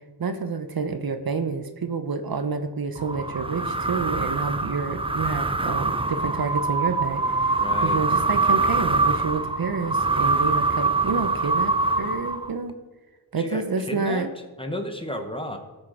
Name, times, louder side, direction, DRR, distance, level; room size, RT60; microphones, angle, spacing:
voice 1, 0.2-7.2 7.8-12.7 13.3-14.3, right 4 dB, 55° right, 8 dB, 0.9 m, -28 dB
sound 1, 3.0-12.7, right 3 dB, 15° right, 0.4 m, -24 dB
voice 2, 7.6-8.0 13.4-14.3 14.6-15.6, equal, 10° left, 5 dB, 1.2 m, -32 dB
17.0 x 6.5 x 5.0 m, 1.2 s
wide cardioid pair, 110°, 42 cm